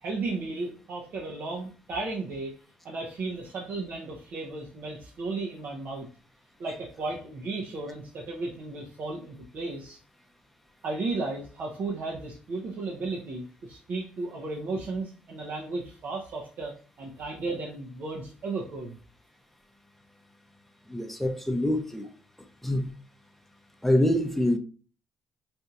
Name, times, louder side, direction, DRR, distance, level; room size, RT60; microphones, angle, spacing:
voice 1, 0.0-2.5 2.8-6.1 6.6-10.0 10.8-19.0, right 3 dB, 60° right, -2 dB, 0.7 m, -34 dB
voice 2, 20.9-22.1 22.6-22.9 23.8-24.6, left 1 dB, 5° left, 5 dB, 0.7 m, -25 dB
4.2 x 2.7 x 2.4 m, 0.39 s
supercardioid pair, 60°, 4 cm